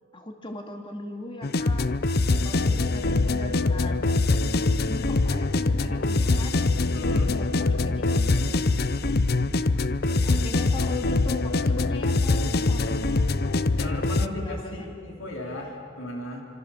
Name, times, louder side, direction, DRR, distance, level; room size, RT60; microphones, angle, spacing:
voice 1, 0.1-2.0 2.4-4.1 4.9-6.6 6.8-9.1 10.2-14.9, left 1 dB, 25° left, 3 dB, 2.6 m, -40 dB
sound 1, 1.4-14.3, left 3 dB, 50° left, 0.7 m, -23 dB
voice 2, 6.9-7.4 9.8-10.4 12.8-13.0 13.8-16.4, left 1 dB, 65° left, 1 dB, 4.1 m, -36 dB
27.5 x 26.5 x 7.3 m, 2.4 s
head